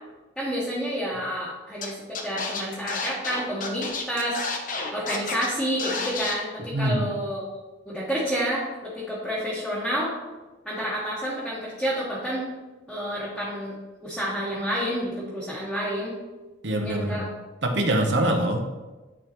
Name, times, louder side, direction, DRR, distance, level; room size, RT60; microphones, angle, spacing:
voice 1, 0.4-4.4 4.9-7.5 7.9-10.1 10.6-12.5 12.9-13.8 14.0-16.1 16.8-17.2, equal, ahead, -9 dB, 1.1 m, -29 dB
Scratching (performance technique), 1.8-1.9 2.1-5.5 5.8-6.3, left 4 dB, 45° left, 0.7 m, -30 dB
voice 2, 6.7-7.1 16.6-17.2 17.6-18.6, right 1 dB, 65° right, 4 dB, 0.8 m, -24 dB
9.6 x 3.6 x 2.9 m, 1.2 s
head